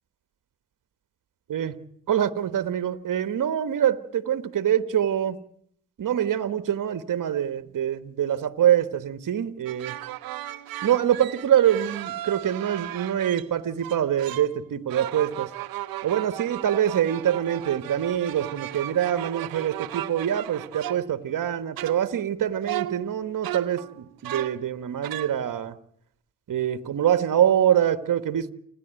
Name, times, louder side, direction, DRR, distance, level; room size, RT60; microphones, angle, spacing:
voice 1, 2.1-5.4 6.0-10.0 10.8-15.5 16.0-25.8 26.5-28.5, right 10 dB, 65° right, 11 dB, 1.4 m, -25 dB
sound 1, 9.7-13.5 13.8-14.6 14.9-21.4 21.8-22.4 22.6-24.7 25.0-25.4, right 14 dB, 85° right, 0.8 m, -36 dB
28.5 x 11.0 x 9.2 m, 0.68 s
supercardioid pair, 50°, 34 cm